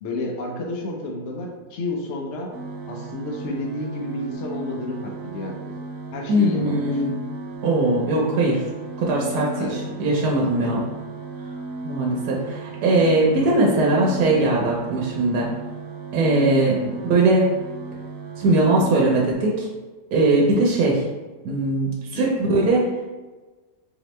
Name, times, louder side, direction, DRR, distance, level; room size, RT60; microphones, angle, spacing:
voice 1, 0.0-2.5 2.9-5.5 6.1-7.0 9.6-9.8 10.6-10.9 13.4-13.6 16.8-16.9 22.1-22.3, left 2 dB, 55° left, 0 dB, 0.8 m, -31 dB
sound 1, 2.5-19.3, right 3 dB, 65° right, 0.8 m, -35 dB
voice 2, 6.3-7.1 7.6-8.6 9.0-10.8 11.8-15.5 16.1-16.7 17.1-17.4 18.4-19.7 20.1-21.0 21.4-22.8, right 2 dB, 80° right, -3 dB, 1.2 m, -20 dB
3.9 x 2.9 x 3.1 m, 1.2 s
omnidirectional pair, 1.7 m